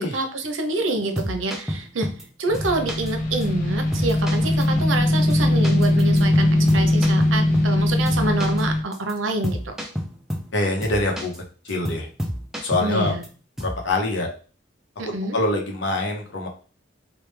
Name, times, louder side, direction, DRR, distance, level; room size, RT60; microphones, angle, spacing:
voice 1, 0.0-2.1 2.4-9.7 12.8-13.2 15.0-15.4, right 2 dB, 85° right, 6 dB, 0.6 m, -27 dB
sound 1, 1.0-2.2 2.5-3.1 3.4-3.5 3.9-5.0 5.3-7.8 8.1-8.6 8.9-9.1 9.4-10.5 10.8-11.4 11.7-13.3 13.6-13.9, equal, ahead, 0.3 m, -30 dB
sound 2, 2.5-8.8, left 1 dB, 40° left, 0.6 m, -20 dB
voice 2, 10.5-11.3 11.7-12.1 12.6-13.1 13.6-14.3 15.0-16.5, left 2 dB, 70° left, 1 dB, 0.8 m, -24 dB
3.1 x 2.2 x 3.2 m, 0.38 s
head